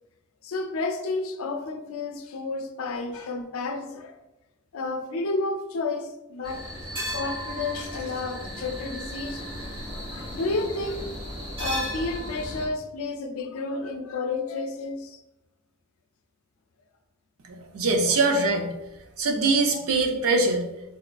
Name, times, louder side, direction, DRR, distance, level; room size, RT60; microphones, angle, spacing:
voice 1, 0.4-4.2 4.7-6.7 6.9-9.5 9.9-11.2 11.6-15.2 19.7-19.8, left 3 dB, 75° left, 6 dB, 0.4 m, -31 dB
sound 1, 6.4-12.7, equal, 25° right, 1.0 m, -35 dB
voice 2, 17.5-18.7 19.2-20.6, right 3 dB, 85° right, 3 dB, 0.5 m, -23 dB
4.1 x 2.4 x 2.3 m, 0.95 s
head